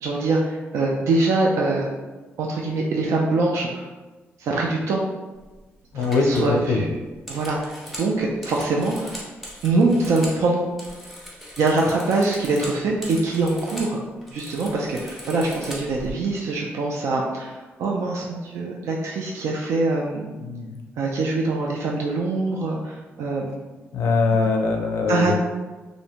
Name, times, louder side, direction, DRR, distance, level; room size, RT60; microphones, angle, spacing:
voice 1, 0.0-1.9 2.4-3.9 4.4-5.0 5.9-6.9 7.3-9.2 9.6-10.6 11.6-14.0 14.3-20.3 21.0-23.5 25.1-25.3, right 3 dB, 80° right, -1 dB, 0.3 m, -23 dB
sound 1, 5.4-5.6 6.0-10.4 10.7-13.9 14.2-16.1, equal, ahead, 0.6 m, -39 dB
voice 2, 5.9-6.8 20.4-20.8 23.9-25.3, left 3 dB, 70° left, 2 dB, 0.4 m, -22 dB
2.5 x 2.0 x 2.8 m, 1.2 s
cardioid pair, 140°, 5 cm